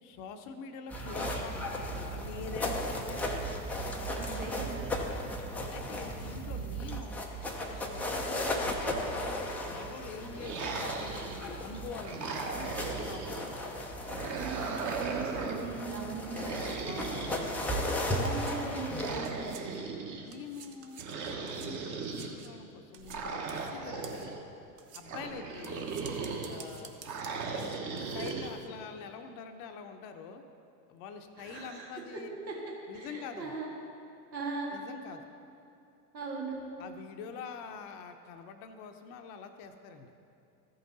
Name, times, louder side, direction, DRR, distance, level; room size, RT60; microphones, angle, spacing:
voice 1, 0.0-3.6 5.7-7.3 7.7-13.6 16.8-17.9 20.2-24.4 24.9-25.9 26.4-26.9 27.5-30.4 30.9-32.3 32.9-33.5 34.7-35.3 36.8-40.1, left 5 dB, 40° left, 6 dB, 0.7 m, -45 dB
Foley Grass Foot steps, 0.9-19.2, equal, 5° left, 0.3 m, -36 dB
voice 2, 4.1-4.9 14.3-16.9 18.0-19.9 31.4-31.9 32.5-33.7 34.3-34.8 36.1-36.6, right 4 dB, 90° right, -2 dB, 1.7 m, -39 dB
sound 1, 10.3-11.6 12.0-13.5 14.1-15.7 16.3-18.0 18.9-20.3 21.0-22.4 23.1-24.4 25.1-26.6 27.0-28.5, right 4 dB, 35° right, 1.2 m, -37 dB
sound 2, 18.3-19.9 20.2-28.7, right 7 dB, 75° right, 1.0 m, -52 dB
14.0 x 5.5 x 3.9 m, 2.6 s
hypercardioid pair, 100°, 50 cm